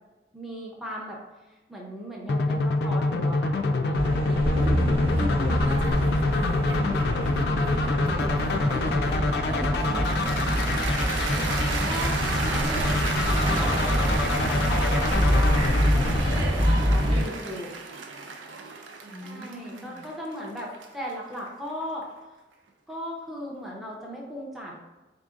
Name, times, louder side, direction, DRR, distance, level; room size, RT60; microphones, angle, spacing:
voice 1, 0.3-1.2 1.7-4.5 11.8-15.6 16.2-17.7 19.2-22.1 22.9-24.8, equal, ahead, -3 dB, 0.5 m, -37 dB
sound 1, 2.3-17.2, left 3 dB, 55° left, 0.3 m, -27 dB
sound 2, 4.0-17.2, equal, 30° right, 0.8 m, -26 dB
voice 2, 4.4-11.3 19.0-20.1, equal, 70° right, -1 dB, 0.9 m, -38 dB
Cheering / Applause, 9.8-22.0, right 4 dB, 85° right, 0.5 m, -34 dB
3.8 x 3.7 x 2.4 m, 1.1 s
head